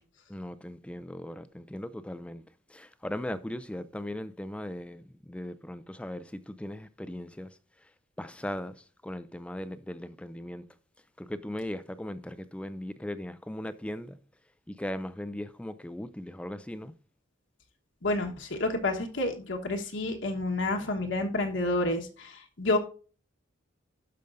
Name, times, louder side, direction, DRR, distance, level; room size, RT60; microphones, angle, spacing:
voice 1, 0.3-2.4 2.7-7.6 8.2-10.6 11.2-14.2 14.7-16.9, left 1 dB, 5° left, 0.3 m, -38 dB
voice 2, 18.0-22.8, left 2 dB, 70° left, 1.3 m, -29 dB
12.0 x 5.2 x 2.6 m
head